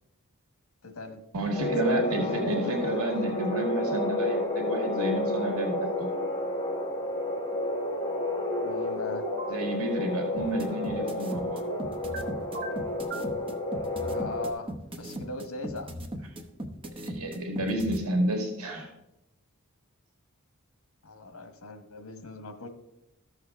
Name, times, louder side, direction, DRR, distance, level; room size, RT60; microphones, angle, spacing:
voice 1, 0.8-1.2 1.8-3.6 8.6-9.2 14.1-15.9 21.0-22.7, left 2 dB, 70° left, 7 dB, 1.2 m, -39 dB
voice 2, 1.3-6.1 9.5-11.6 17.0-18.9, right 1 dB, 90° right, 2 dB, 1.7 m, -30 dB
sound 1, 1.5-14.5, left 1 dB, 20° left, 1.2 m, -31 dB
sound 2, 9.2-9.6 11.6-12.2 12.5-13.3, right 1 dB, 55° right, 1.5 m, -37 dB
sound 3, 10.4-18.0, right 1 dB, 25° right, 0.9 m, -37 dB
13.5 x 6.4 x 3.6 m, 0.87 s
head